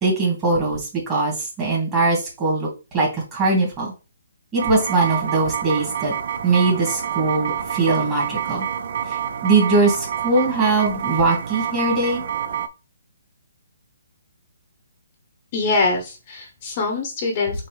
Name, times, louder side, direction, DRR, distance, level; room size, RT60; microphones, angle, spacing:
voice 1, 0.0-2.7 2.9-3.9 4.5-6.1 6.4-8.7 9.1-12.2, right 3 dB, 15° right, -3 dB, 2.0 m, -21 dB
sound 1, 4.6-12.7, right 9 dB, 50° right, 0.4 m, -27 dB
voice 2, 15.5-17.7, left 3 dB, 30° left, 2 dB, 0.8 m, -23 dB
6.2 x 2.6 x 3.2 m, 0.31 s
hypercardioid pair, 160°, 0 cm